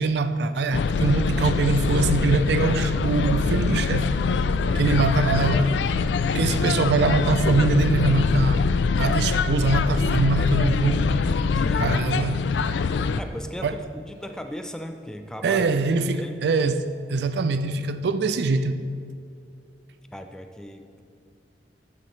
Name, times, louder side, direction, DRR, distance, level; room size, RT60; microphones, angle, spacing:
voice 1, 0.0-4.1 4.7-5.8 6.3-8.7 9.0-11.1 11.8-12.5 13.6-13.7 15.4-18.8, right 3 dB, 65° right, 0.4 m, -23 dB
sound 1, 0.7-13.2, left 4 dB, 80° left, 0.3 m, -23 dB
voice 2, 11.5-12.0 13.2-15.7 16.0-16.4 20.1-21.0, equal, 5° left, 0.4 m, -37 dB
12.5 x 6.8 x 3.2 m
head